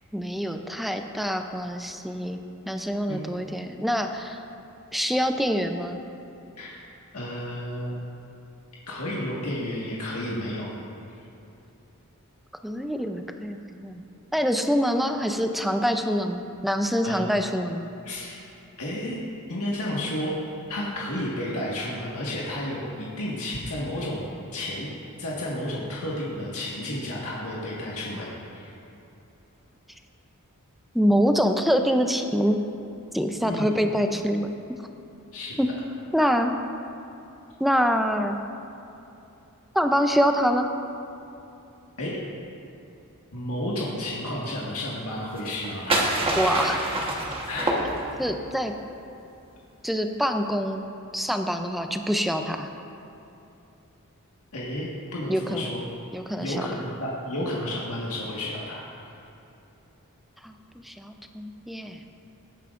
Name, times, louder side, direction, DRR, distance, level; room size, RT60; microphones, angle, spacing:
voice 1, 0.1-2.4 2.7-4.4 4.9-6.0 12.6-14.0 14.3-17.9 30.9-32.6 33.1-34.5 35.6-35.7 36.1-36.6 37.6-38.4 39.7-40.7 46.4-46.8 48.2-48.7 49.8-50.8 51.1-52.7 55.3-55.7 56.1-56.7 60.4-62.0, equal, ahead, 5 dB, 0.5 m, -25 dB
voice 2, 7.1-7.9 8.9-10.7 17.0-17.4 18.0-18.4 18.8-19.2 19.5-20.3 20.7-24.9 25.2-28.7 33.4-33.7 35.3-35.6 42.0-42.2 43.3-46.1 47.5-47.8 54.5-55.8 56.4-59.2, left 1 dB, 90° left, -5 dB, 1.7 m, -32 dB
sound 1, 45.4-48.4, right 1 dB, 25° right, 1.3 m, -26 dB
18.5 x 9.3 x 2.5 m, 2.8 s
head